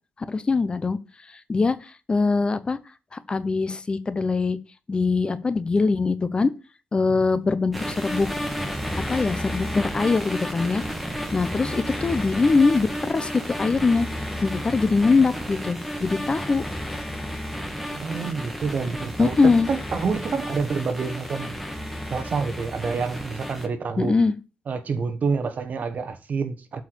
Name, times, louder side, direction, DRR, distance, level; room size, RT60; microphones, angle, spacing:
voice 1, 0.3-1.0 1.5-2.8 3.1-4.6 4.9-6.5 6.9-8.3 9.1-10.8 11.3-16.6 19.2-19.7 24.0-24.3, left 4 dB, 30° left, 0.7 m, -22 dB
voice 2, 7.1-7.4 17.9-21.6 22.1-24.2 24.7-26.8, right 5 dB, 55° right, 1.2 m, -28 dB
sound 1, 7.7-23.7, equal, ahead, 1.5 m, -32 dB
8.0 x 4.7 x 6.7 m
wide cardioid pair, 120°, 3 cm